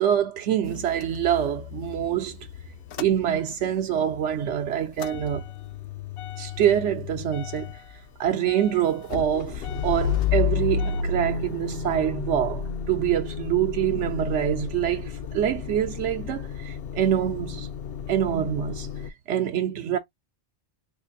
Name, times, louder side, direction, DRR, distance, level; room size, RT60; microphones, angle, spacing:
voice 1, 0.0-2.4 3.0-5.4 6.4-7.7 8.2-17.7 18.1-18.9 19.3-20.0, right 10 dB, 80° right, 0.9 m, -25 dB
Motor vehicle (road) / Engine starting / Idling, 0.6-3.8 4.1-19.1, left 7 dB, 65° left, 0.7 m, -32 dB
4.4 x 2.4 x 2.5 m
omnidirectional pair, 1.2 m